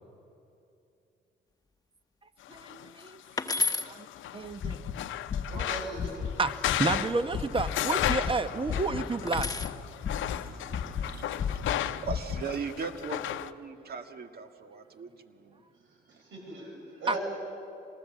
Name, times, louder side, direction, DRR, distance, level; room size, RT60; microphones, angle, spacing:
sound 1, 2.5-13.5, left 12 dB, 75° left, 0.7 m, -35 dB
voice 1, 2.5-4.8 6.4-9.6 17.1-17.2, right 3 dB, 25° right, 11 dB, 1.0 m, -31 dB
sound 2, 3.4-3.9 6.1-6.7 9.3-9.8 11.1-11.6, left 3 dB, 20° left, 1.0 m, -32 dB
sound 3, 4.5-5.7 6.0-6.3 6.6-9.1 9.3-11.1 11.4-12.4, left 7 dB, 50° left, 1.1 m, -33 dB
voice 2, 5.5-6.3 6.9-7.1 16.2-17.2, right 2 dB, 75° right, -2 dB, 6.9 m, -39 dB
voice 3, 10.1-15.6 16.1-16.2, right 5 dB, 50° right, 7 dB, 1.7 m, -40 dB
26.0 x 19.0 x 7.6 m, 2.7 s
cardioid pair, 90°, 20 cm